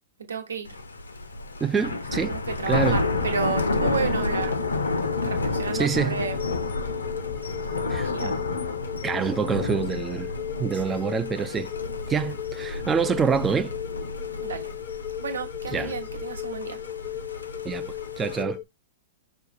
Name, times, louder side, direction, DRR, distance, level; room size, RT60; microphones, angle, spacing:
voice 1, 0.2-0.8 2.2-4.6 5.2-6.4 7.8-8.3 10.7-11.0 14.4-14.7 15.2-16.8, right 5 dB, 80° right, 1.0 m, -32 dB
Thunder, 0.7-18.4, left 2 dB, 85° left, 0.6 m, -30 dB
voice 2, 1.6-2.3 2.7-3.0 5.7-6.2 7.9-8.3 9.0-10.3 10.6-11.7 12.1-13.7 15.7-15.9 17.6-18.6, right 6 dB, 20° right, 0.3 m, -26 dB
sound 1, 3.0-18.6, left 13 dB, 40° left, 0.6 m, -36 dB
5.1 x 2.3 x 4.1 m
hypercardioid pair, 105°, 0 cm